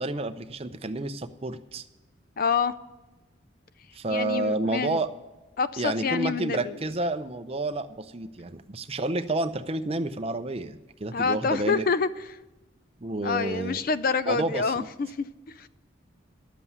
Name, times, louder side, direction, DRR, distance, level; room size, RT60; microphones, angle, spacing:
voice 1, 0.0-1.9 3.9-5.1 5.8-11.9 13.0-13.8 14.3-14.9, right 2 dB, 30° right, 9 dB, 0.6 m, -30 dB
voice 2, 2.4-2.7 4.1-5.0 5.6-6.7 11.1-12.4 13.2-15.7, left 5 dB, 45° left, 15 dB, 0.4 m, -27 dB
11.0 x 7.6 x 7.0 m, 1.1 s
head